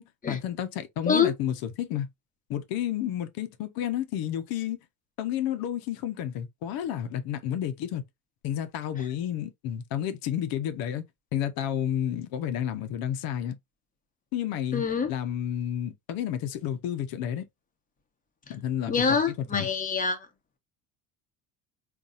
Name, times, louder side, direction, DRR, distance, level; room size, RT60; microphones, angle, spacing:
voice 1, 0.0-2.1 2.5-4.8 5.2-8.0 8.4-11.0 11.3-13.6 14.3-17.4 18.5-19.2 19.5-19.7, left 10 dB, 65° left, 0.8 m, -31 dB
voice 2, 14.7-15.1 18.9-20.3, left 5 dB, 20° left, 1.1 m, -25 dB
4.0 x 2.6 x 2.4 m
supercardioid pair, 105°, 38 cm